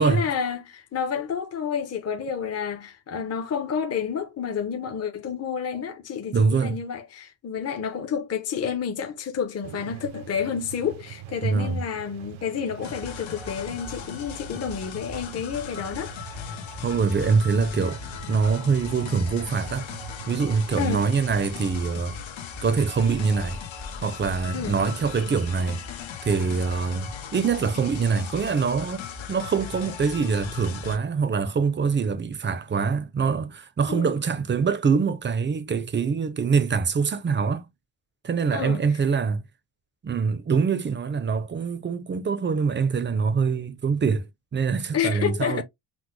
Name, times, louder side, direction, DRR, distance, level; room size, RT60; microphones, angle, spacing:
voice 1, 0.0-16.1 20.8-21.0 24.5-24.8 33.9-34.1 38.5-38.8 44.9-45.6, left 7 dB, 35° left, 0.6 m, -29 dB
voice 2, 6.3-6.8 11.4-11.8 16.8-18.0 18.3-19.9 20.3-22.2 22.6-23.6 24.0-25.8 26.2-29.0 29.3-37.7 38.2-39.4 40.0-44.3 44.5-45.6, right 5 dB, 25° right, 0.4 m, -24 dB
sound 1, 9.6-22.2, right 12 dB, 85° right, 0.6 m, -43 dB
sound 2, 12.8-31.0, left 7 dB, 80° left, 1.0 m, -38 dB
6.0 x 2.1 x 3.1 m
wide cardioid pair, 165°, 46 cm